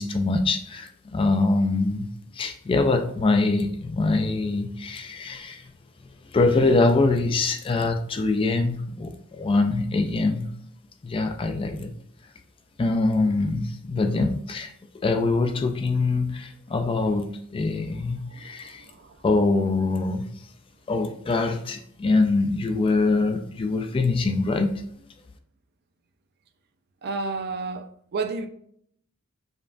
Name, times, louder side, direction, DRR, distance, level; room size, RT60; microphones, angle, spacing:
voice 1, 0.0-2.1 2.3-5.6 6.3-10.5 11.0-11.9 12.8-14.7 15.0-18.8 19.2-20.3 20.9-24.8, left 3 dB, 25° left, 0.3 m, -24 dB
voice 2, 17.8-19.2 27.0-28.5, right 4 dB, 50° right, 0.4 m, -33 dB
5.1 x 2.4 x 2.5 m
head